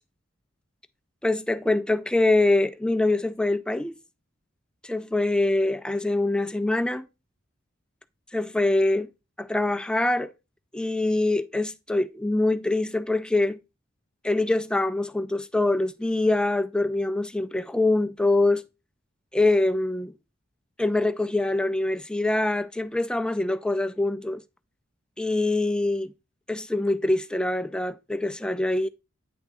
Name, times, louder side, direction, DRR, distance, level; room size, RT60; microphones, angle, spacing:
voice 1, 1.2-4.0 4.8-7.1 8.3-9.1 9.4-10.3 10.7-13.6 14.2-18.6 19.3-20.1 20.8-24.4 25.2-26.1 26.5-28.9, left 2 dB, 5° left, 0.3 m, -24 dB
9.3 x 3.5 x 4.1 m
head